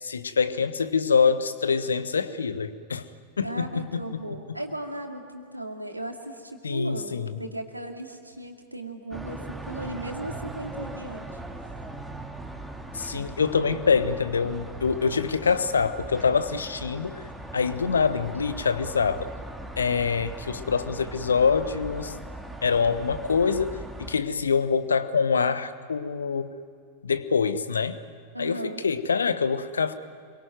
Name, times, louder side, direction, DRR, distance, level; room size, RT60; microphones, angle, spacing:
voice 1, 0.0-3.1 3.4-4.1 6.6-7.4 12.9-19.3 19.8-22.2 22.6-26.6 27.0-28.0 28.4-29.9, left 5 dB, 70° left, 13 dB, 1.2 m, -25 dB
voice 2, 3.4-11.4 28.3-28.8, right 1 dB, 85° right, 3 dB, 2.5 m, -36 dB
sound 1, 9.1-24.2, right 2 dB, ahead, 2.8 m, -39 dB
26.0 x 23.0 x 9.3 m, 2.3 s
figure-of-eight pair, 90°, 0 cm